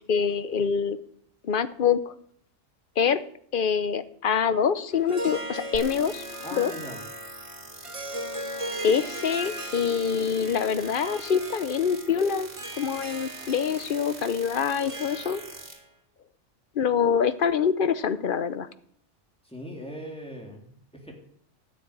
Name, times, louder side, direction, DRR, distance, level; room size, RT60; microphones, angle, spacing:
voice 1, 0.1-1.0 1.4-2.1 3.0-3.2 3.5-6.2 6.5-6.7 8.8-12.5 12.8-15.4 16.7-18.7, left 7 dB, 50° left, 13 dB, 0.9 m, -25 dB
Harp, 4.9-15.8, right 1 dB, 25° right, 1.4 m, -38 dB
sound 1, 5.7-15.7, right 2 dB, 75° right, 3.2 m, -44 dB
voice 2, 6.4-7.1 19.4-21.1, equal, 5° left, 0 dB, 3.3 m, -39 dB
13.0 x 7.2 x 9.8 m, 0.64 s
omnidirectional pair, 1.3 m